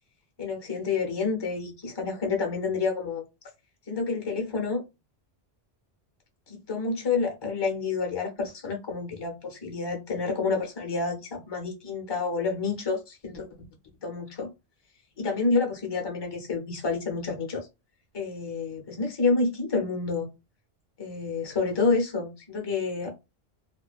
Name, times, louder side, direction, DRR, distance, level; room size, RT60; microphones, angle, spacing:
voice 1, 0.4-3.2 3.9-4.8 6.5-13.5 14.0-14.5 15.2-17.7 18.1-20.3 21.0-23.1, left 4 dB, 30° left, 0.6 m, -29 dB
2.3 x 2.2 x 2.4 m
omnidirectional pair, 1.1 m